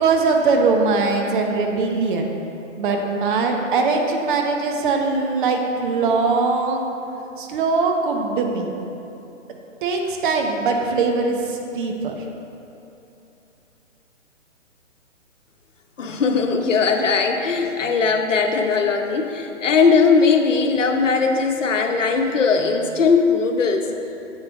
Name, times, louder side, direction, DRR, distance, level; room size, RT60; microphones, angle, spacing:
voice 1, 0.0-2.3 2.8-6.9 7.4-8.8 9.8-12.1, right 4 dB, 40° right, 2 dB, 1.1 m, -21 dB
voice 2, 16.0-23.9, left 5 dB, 75° left, 4 dB, 1.1 m, -19 dB
9.4 x 7.6 x 3.7 m, 2.9 s
hypercardioid pair, 135°, 38 cm